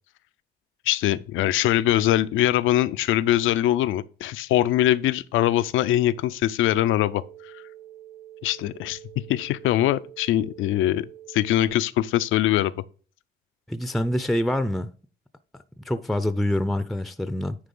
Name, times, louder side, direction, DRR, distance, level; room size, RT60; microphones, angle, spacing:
voice 1, 0.9-7.5 8.4-9.0 9.3-12.7, left 13 dB, 85° left, 0.5 m, -22 dB
sound 1, 6.7-11.7, right 12 dB, 60° right, 2.0 m, -46 dB
voice 2, 13.7-14.9 15.8-17.6, left 1 dB, ahead, 0.5 m, -26 dB
9.5 x 3.3 x 5.3 m
cardioid pair, 90°, 20 cm